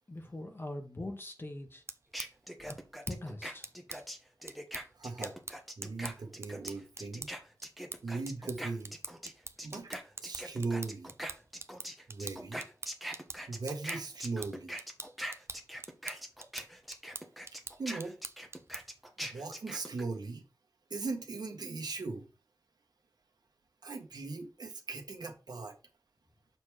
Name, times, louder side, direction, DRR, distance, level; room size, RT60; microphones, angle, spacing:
voice 1, 0.1-1.8 2.7-2.8 3.1-3.7, left 1 dB, 35° left, 1.3 m, -41 dB
sound 1, 1.7-19.0, right 3 dB, 40° right, 0.6 m, -47 dB
sound 2, 2.1-9.3 9.6-20.0, equal, ahead, 1.1 m, -42 dB
voice 2, 4.9-5.3 5.8-7.3 8.0-8.9 9.6-11.1 12.1-12.6 13.5-14.8 17.8-18.2 19.2-20.4 20.9-22.3 23.8-25.8, right 3 dB, 80° right, 1.4 m, -39 dB
6.8 x 3.5 x 4.7 m
wide cardioid pair, 85°, 7 cm